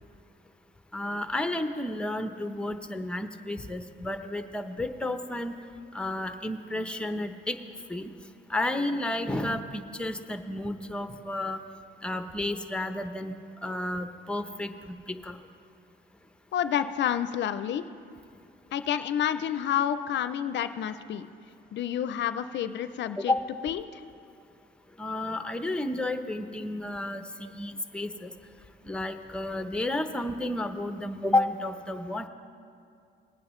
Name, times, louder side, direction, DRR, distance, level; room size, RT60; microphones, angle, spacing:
voice 1, 0.9-5.5 5.9-7.6 7.9-8.1 8.5-11.6 12.0-13.3 13.6-15.4 23.2-23.4 25.0-28.3 28.8-32.3, left 1 dB, 5° left, 8 dB, 0.7 m, -31 dB
voice 2, 16.5-17.8 18.7-21.3 21.7-23.3 23.6-23.8, left 9 dB, 65° left, 12 dB, 0.4 m, -29 dB
19.0 x 9.4 x 3.1 m, 2.4 s
cardioid pair, 90°, 20 cm